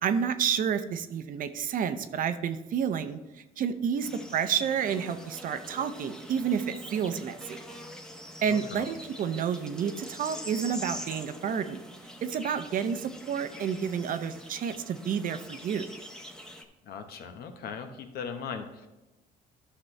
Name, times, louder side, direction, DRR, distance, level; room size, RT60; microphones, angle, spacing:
voice 1, 0.0-7.6 8.4-11.8 12.2-15.9, right 7 dB, 55° right, 10 dB, 0.7 m, -30 dB
sound 1, 4.0-16.6, equal, 5° left, 0.9 m, -44 dB
voice 2, 8.5-8.9 16.8-18.9, left 6 dB, 65° left, 6 dB, 1.1 m, -39 dB
11.5 x 6.0 x 3.3 m, 1.0 s
cardioid pair, 110°, 17 cm